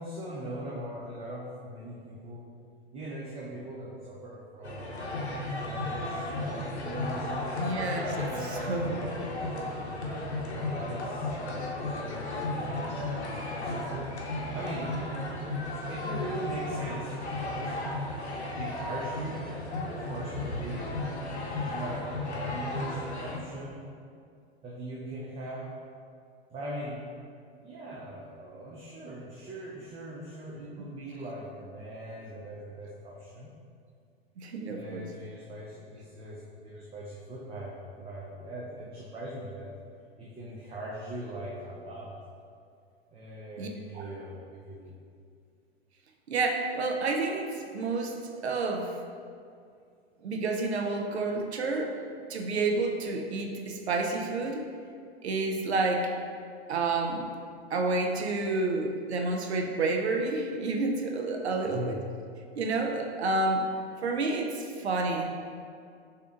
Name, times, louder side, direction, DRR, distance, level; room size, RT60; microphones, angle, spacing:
voice 1, 0.0-2.4 2.9-5.0 5.7-7.6 8.2-14.1 14.5-14.9 15.9-17.8 18.5-19.4 19.9-23.8 24.6-25.7 26.5-27.0 27.6-33.5 34.7-39.7 40.2-42.2 43.1-44.9 61.7-62.0, right 1 dB, 20° right, -5 dB, 0.5 m, -40 dB
sound 1, 4.6-23.4, left 2 dB, 85° left, 0.7 m, -34 dB
voice 2, 7.6-9.0 34.4-35.1 43.6-43.7 43.9-44.1 46.3-49.0 50.2-52.0 52.3-54.6 55.2-56.1 56.7-57.3 57.7-62.0 62.5-63.7 64.0-65.3, right 3 dB, 80° right, 2 dB, 0.6 m, -29 dB
6.6 x 2.8 x 2.5 m, 2.3 s
figure-of-eight pair, 95°, 33 cm